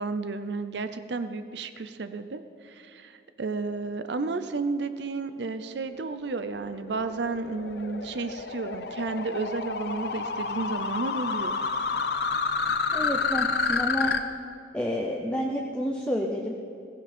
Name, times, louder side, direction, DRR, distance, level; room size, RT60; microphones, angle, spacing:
voice 1, 0.0-11.6, right 3 dB, 65° right, 10 dB, 0.6 m, -32 dB
sound 1, 6.1-14.2, left 4 dB, 60° left, 0.8 m, -29 dB
voice 2, 12.9-14.1 14.7-16.5, equal, 5° left, -1 dB, 0.8 m, -29 dB
16.0 x 15.5 x 4.4 m, 2.7 s
head